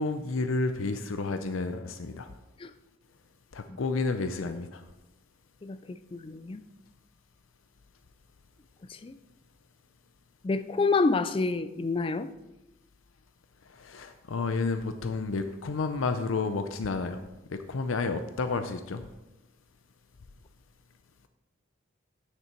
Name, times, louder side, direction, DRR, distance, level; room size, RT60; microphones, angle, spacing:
voice 1, 0.0-2.3 3.5-4.8 13.8-17.2 17.5-19.0, left 3 dB, 80° left, 8 dB, 0.5 m, -31 dB
voice 2, 5.6-6.6 8.9-9.2 10.4-12.3, left 3 dB, 25° left, 12 dB, 0.3 m, -28 dB
9.0 x 6.6 x 4.4 m, 1.0 s
head